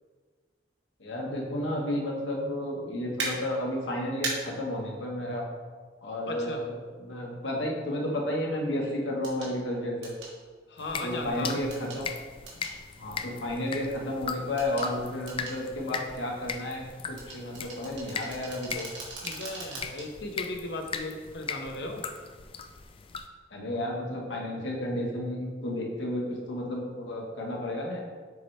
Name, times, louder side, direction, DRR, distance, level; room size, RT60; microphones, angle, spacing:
voice 1, 1.0-5.5 6.0-10.1 11.0-12.0 13.0-18.9 23.5-28.0, left 1 dB, 85° left, -1 dB, 1.2 m, -32 dB
sound 1, 3.2-3.3 4.2-4.3 6.3-6.4 9.2-9.5 10.0-10.3 11.7-12.0 12.5-12.8 14.6-14.9 15.3-15.6 17.2-20.1 20.5-20.6, right 3 dB, 80° right, 1.5 m, -37 dB
voice 2, 6.3-6.6 10.7-11.6 19.2-22.0, left 2 dB, 65° left, 3 dB, 0.8 m, -36 dB
sound 2, 10.8-23.3, left 5 dB, 30° left, 0.3 m, -39 dB
7.0 x 3.2 x 4.3 m, 1.5 s
head